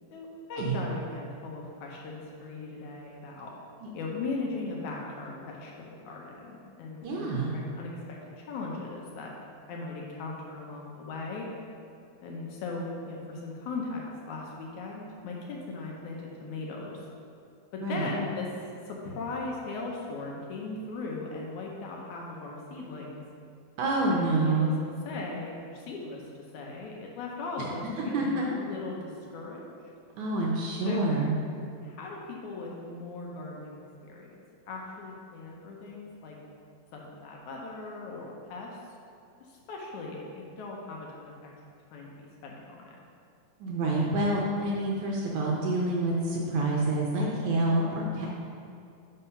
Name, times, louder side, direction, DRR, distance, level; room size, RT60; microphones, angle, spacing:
voice 1, 0.1-3.5 3.9-7.9 8.4-9.3 9.7-11.5 12.2-17.0 17.7-18.5 18.9-23.2 24.1-24.7 25.1-29.7 30.9-31.1 31.8-34.3 34.7-36.4 36.9-38.8 39.4-41.3 41.9-42.9, left 3 dB, 75° left, -1 dB, 1.9 m, -38 dB
voice 2, 7.0-7.5 17.8-18.1 23.8-24.7 28.1-28.4 30.2-31.3 43.6-48.3, right 2 dB, 75° right, -3 dB, 1.8 m, -27 dB
5.4 x 5.4 x 5.5 m, 2.4 s
omnidirectional pair, 4.0 m